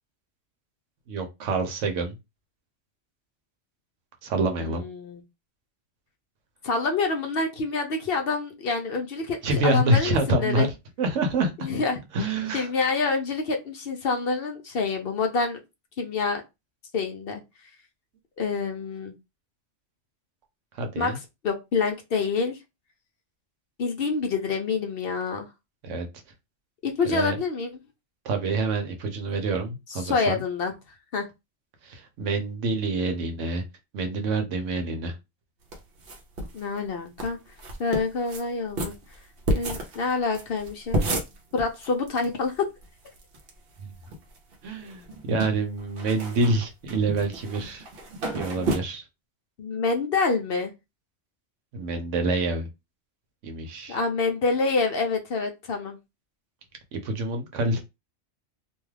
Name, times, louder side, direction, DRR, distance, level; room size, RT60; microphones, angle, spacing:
voice 1, 1.1-2.2 4.2-4.8 9.4-10.7 11.0-11.7 12.1-12.7 20.7-21.2 25.8-26.1 27.1-27.4 28.2-30.4 31.8-33.6 33.9-35.1 43.8-43.9 44.6-47.8 48.3-49.1 51.7-52.7 53.4-54.0 56.9-57.8, right 2 dB, 80° right, 1.0 m, -27 dB
voice 2, 4.6-5.2 6.6-9.4 9.6-10.7 11.6-12.0 12.5-15.6 16.0-16.4 16.9-17.4 18.4-19.1 21.0-21.1 21.4-22.6 23.8-25.5 26.8-27.7 29.9-30.7 31.1-31.2 36.5-37.4 37.8-38.9 39.5-41.0 41.5-42.7 49.6-50.7 53.9-56.0, left 4 dB, 60° left, 0.7 m, -27 dB
sound 1, 35.7-36.6 36.9-37.0 37.2-37.3 37.6-38.4 38.8-42.3 42.5-42.6 42.8-43.5 43.9-44.6 44.9-48.8, right 1 dB, 60° right, 0.9 m, -31 dB
2.5 x 2.3 x 3.2 m
omnidirectional pair, 1.2 m